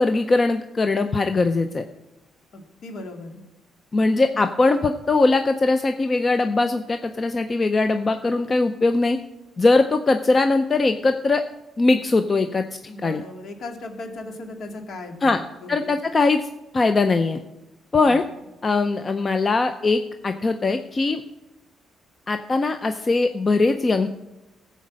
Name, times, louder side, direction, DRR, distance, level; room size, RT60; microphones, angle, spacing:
voice 1, 0.0-1.8 3.9-9.2 9.6-11.4 11.8-12.6 13.0-13.2 15.2-15.4 15.7-16.4 16.7-17.4 17.9-18.2 18.6-21.2 22.3-24.1, left 3 dB, 35° left, 8 dB, 0.6 m, -20 dB
voice 2, 2.5-3.4 12.9-16.0 18.0-18.2, left 2 dB, 65° left, 4 dB, 2.1 m, -37 dB
14.5 x 5.2 x 7.5 m, 1.0 s
cardioid pair, 90°, 0 cm